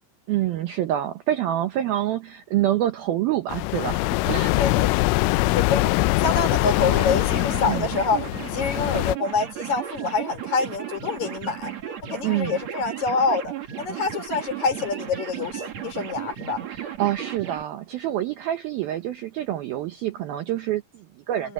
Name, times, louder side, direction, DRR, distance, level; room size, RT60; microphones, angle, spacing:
voice 1, 0.3-4.7 7.7-7.9 12.2-12.6 16.7-21.5, right 12 dB, 85° right, 2.1 m, -27 dB
sound 1, 3.5-9.2, left 21 dB, 85° left, 3.1 m, -23 dB
voice 2, 4.6-4.9 5.3-5.9 6.2-11.7 12.1-16.6 21.3-21.5, left 4 dB, 35° left, 6.2 m, -26 dB
sound 2, 6.8-17.6, right 10 dB, 50° right, 2.2 m, -35 dB
omnidirectional pair, 5.8 m